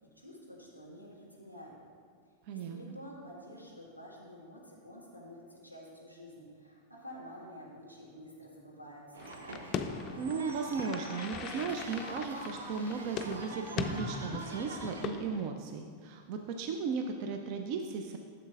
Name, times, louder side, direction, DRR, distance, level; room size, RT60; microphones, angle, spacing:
voice 1, 0.1-1.7 2.5-9.3, equal, 90° right, -4 dB, 1.6 m, -50 dB
voice 2, 2.5-3.0 10.2-18.2, right 5 dB, 45° right, 5 dB, 0.4 m, -36 dB
sound 1, 9.1-15.1, right 2 dB, 65° right, 0.8 m, -44 dB
sound 2, 9.2-15.5, left 6 dB, 30° left, 0.4 m, -40 dB
12.5 x 6.7 x 2.5 m, 2.1 s
figure-of-eight pair, 90°, 0 cm